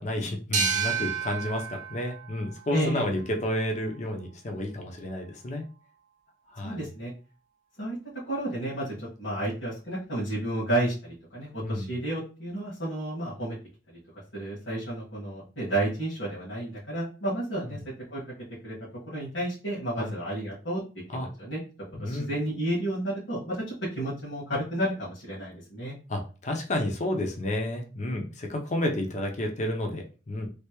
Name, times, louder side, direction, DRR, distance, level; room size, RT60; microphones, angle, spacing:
voice 1, 0.0-5.6 6.5-6.9 11.6-11.9 17.6-17.8 20.0-20.1 21.1-21.3 21.9-22.3 26.1-30.5, left 1 dB, 40° left, 2 dB, 0.7 m, -31 dB
sound 1, 0.5-3.9, right 6 dB, 40° right, 0.7 m, -32 dB
voice 2, 2.7-3.0 6.6-7.1 7.8-8.0 8.2-13.6 14.3-17.8 18.1-18.2 18.6-18.7 19.1-20.8 21.1-21.6 22.0-23.6 24.0-26.0, right 1 dB, 80° left, -9 dB, 1.7 m, -31 dB
3.3 x 2.7 x 3.0 m, 0.34 s
head